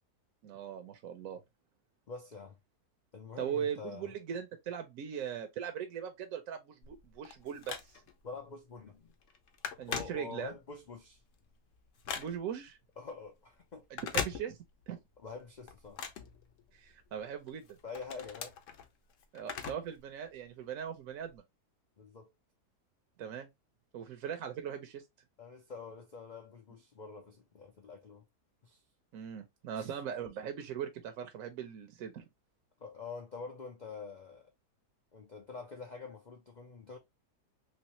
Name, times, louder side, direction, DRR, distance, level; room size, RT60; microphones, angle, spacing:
voice 1, 0.4-1.4 3.4-7.8 9.8-10.5 12.2-12.8 13.9-14.6 14.9-15.0 16.7-17.8 19.3-21.4 23.2-23.5 23.9-25.0 29.1-32.2, right 8 dB, 70° right, 0.9 m, -40 dB
voice 2, 2.1-2.6 3.1-4.1 8.2-9.1 9.9-11.2 13.0-13.9 15.2-16.0 17.8-18.6 22.0-22.3 25.4-28.2 28.6-28.8 29.7-29.9 32.8-34.5 35.1-37.0, left 4 dB, 80° left, 0.4 m, -46 dB
Telephone, 6.8-8.3 8.7-9.0 9.2-10.7 11.1-12.7 13.8-14.9 15.3-17.0 17.5-20.0 20.3-20.4 21.3-21.4, left 7 dB, 60° left, 0.9 m, -41 dB
3.2 x 3.2 x 2.9 m
omnidirectional pair, 1.7 m